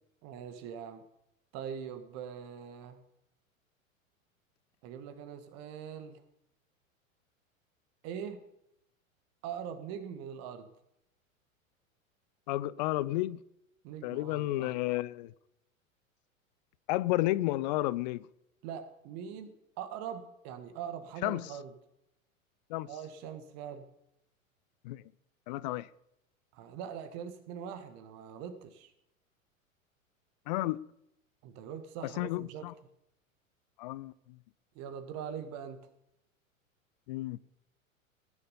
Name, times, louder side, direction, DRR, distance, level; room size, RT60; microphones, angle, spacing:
voice 1, 0.2-1.0 1.5-3.0 4.8-6.2 8.0-8.4 9.4-10.7 13.8-14.8 18.6-21.7 22.9-23.9 26.5-28.9 31.4-32.7 34.7-35.9, right 8 dB, 40° right, 1.6 m, -42 dB
voice 2, 12.5-13.4 14.0-15.3 16.9-18.3 21.2-21.5 22.7-22.9 24.8-25.0 25.5-25.9 30.5-30.8 32.2-32.7 33.8-34.1 37.1-37.4, left 17 dB, 35° left, 0.4 m, -31 dB
20.0 x 7.2 x 5.5 m
figure-of-eight pair, 90°, 41 cm